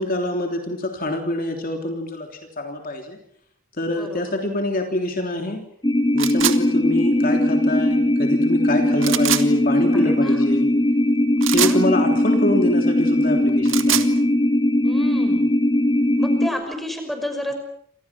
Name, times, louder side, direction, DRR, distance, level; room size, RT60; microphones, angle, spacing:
voice 1, 0.0-2.3 2.6-3.2 3.8-5.6 6.1-10.7 11.4-14.0, left 1 dB, 40° left, 3 dB, 3.4 m, -25 dB
voice 2, 3.9-4.4 9.9-10.4 11.6-11.9 14.8-15.5 16.2-17.5, left 1 dB, ahead, 5 dB, 6.0 m, -31 dB
sound 1, 5.8-16.5, left 1 dB, 20° left, 2.8 m, -19 dB
sound 2, 6.2-6.6 9.0-9.4 11.4-11.8 13.5-14.1, right 11 dB, 65° right, 2.0 m, -23 dB
29.0 x 27.0 x 6.1 m, 0.65 s
head